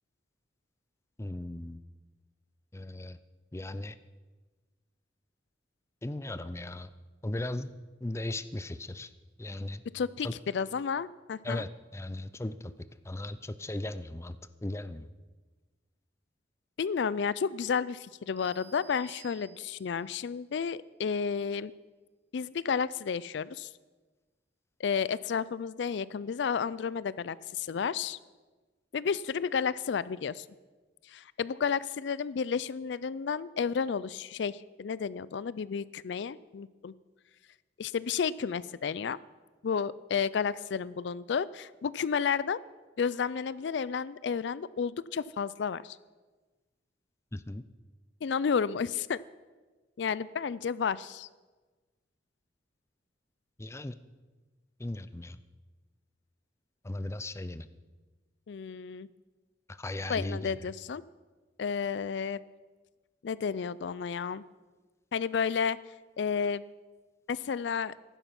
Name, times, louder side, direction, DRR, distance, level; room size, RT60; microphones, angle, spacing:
voice 1, 1.2-1.8 2.7-3.2 3.5-4.0 6.0-6.9 7.2-7.7 8.0-9.1 9.4-9.8 10.2-10.3 11.4-12.7 13.0-14.4 14.6-15.1 47.3-47.6 53.6-53.9 54.8-55.4 56.8-57.7 59.8-60.5, left 1 dB, 15° left, 13 dB, 0.5 m, -37 dB
voice 2, 9.9-11.6 16.8-21.7 22.3-23.7 24.8-28.2 28.9-30.5 31.1-36.9 37.8-39.2 39.6-42.6 43.0-46.0 48.2-49.2 50.0-51.3 58.5-59.1 60.1-61.0 61.6-62.4 63.2-64.4 65.1-65.8 66.2-66.7 67.3-67.9, left 6 dB, 70° left, 19 dB, 0.4 m, -31 dB
sound 1, 18.4-20.1, right 5 dB, 15° right, 3.4 m, -55 dB
14.5 x 11.5 x 5.9 m, 1.3 s
head